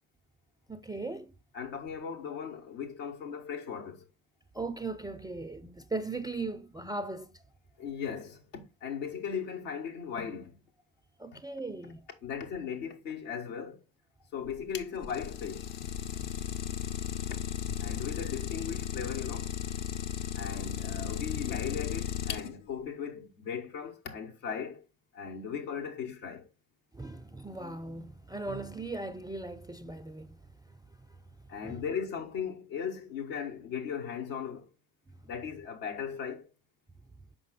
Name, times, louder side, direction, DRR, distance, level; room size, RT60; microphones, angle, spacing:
voice 1, 0.7-1.3 4.5-7.4 11.2-12.1 26.9-30.4 31.6-31.8, right 3 dB, 10° right, 0.4 m, -38 dB
voice 2, 1.5-4.0 7.8-8.4 8.8-10.6 11.3-11.4 12.2-13.8 14.3-15.7 17.8-19.5 20.3-24.8 25.1-26.5 31.5-34.7 35.2-36.5, left 7 dB, 75° left, 1.5 m, -37 dB
Idling, 14.5-22.8, left 10 dB, 60° left, 0.9 m, -35 dB
6.0 x 5.1 x 4.0 m
hypercardioid pair, 55°, 48 cm